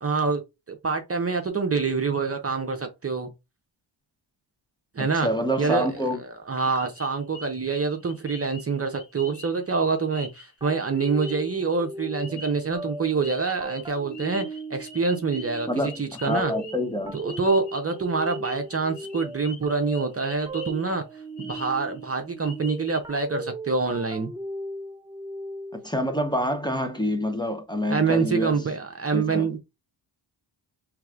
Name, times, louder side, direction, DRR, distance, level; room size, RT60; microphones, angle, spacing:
voice 1, 0.0-0.4 0.7-3.3 4.9-5.3 5.6-16.5 17.1-21.0 21.4-24.3 27.9-29.6, right 4 dB, 30° right, 0.7 m, -26 dB
voice 2, 5.0-6.2 12.3-12.4 15.7-17.2 25.7-28.7 29.1-29.5, equal, 10° left, 0.8 m, -27 dB
sound 1, 6.8-11.7 12.1-13.0 13.2-20.9 21.2-22.0 22.4-23.2, left 2 dB, 55° left, 1.5 m, -45 dB
sound 2, 10.6-26.0, right 1 dB, 10° right, 0.3 m, -38 dB
4.7 x 3.3 x 2.4 m
cardioid pair, 90°, 48 cm